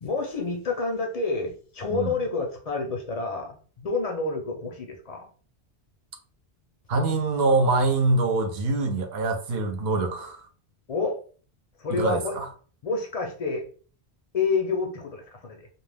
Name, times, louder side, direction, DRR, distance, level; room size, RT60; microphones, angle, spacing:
voice 1, 0.0-5.3 10.9-11.2 11.8-12.3 12.8-13.6 14.3-15.7, left 4 dB, 50° left, 0.4 m, -28 dB
voice 2, 6.9-10.5 11.9-12.5, right 3 dB, 70° right, 0.8 m, -24 dB
2.2 x 2.1 x 3.3 m
omnidirectional pair, 1.1 m